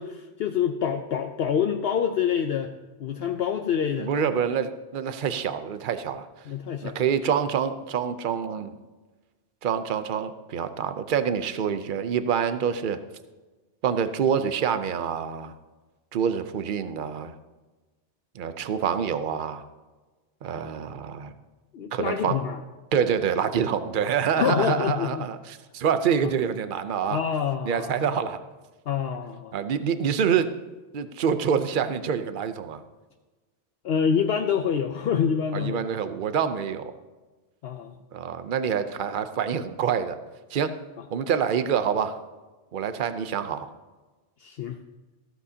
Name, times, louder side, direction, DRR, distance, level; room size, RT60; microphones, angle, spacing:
voice 1, 0.0-2.7 3.0-4.1 6.5-7.0 21.7-22.6 24.4-25.3 26.2-26.3 27.1-28.1 28.9-29.5 33.8-35.9 37.6-37.9 44.4-44.8, left 7 dB, 65° left, 6 dB, 0.8 m, -26 dB
voice 2, 4.0-6.3 6.8-8.7 9.6-13.0 13.8-15.5 16.1-17.3 18.4-19.6 20.4-21.3 21.9-22.4 22.9-25.4 25.7-27.2 27.6-28.4 29.5-30.5 30.9-32.8 35.5-36.9 38.1-40.2 40.5-40.7 41.1-42.2 42.7-43.7, right 7 dB, 50° right, 11 dB, 0.8 m, -26 dB
14.5 x 13.5 x 2.8 m, 1.3 s
omnidirectional pair, 1.2 m